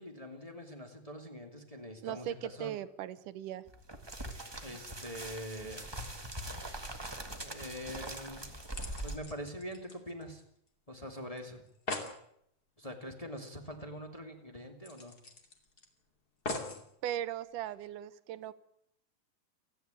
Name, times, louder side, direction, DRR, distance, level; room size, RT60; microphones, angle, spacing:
voice 1, 0.0-2.8 4.6-5.9 7.4-8.5 9.0-10.4 10.9-11.6 12.8-15.2, equal, 10° left, 2 dB, 2.0 m, -44 dB
voice 2, 2.0-3.6 17.0-18.5, right 11 dB, 70° right, 14 dB, 2.2 m, -38 dB
sound 1, 3.7-9.2, right 1 dB, 25° right, 0.5 m, -42 dB
sound 2, 8.0-10.7 11.0-11.1 11.4-11.5 11.7-12.2 13.7-13.8 14.1-14.2 14.8-15.8 16.4-16.9 17.6-17.7, left 2 dB, 30° left, 2.6 m, -42 dB
29.5 x 10.5 x 9.2 m, 0.72 s
omnidirectional pair, 4.3 m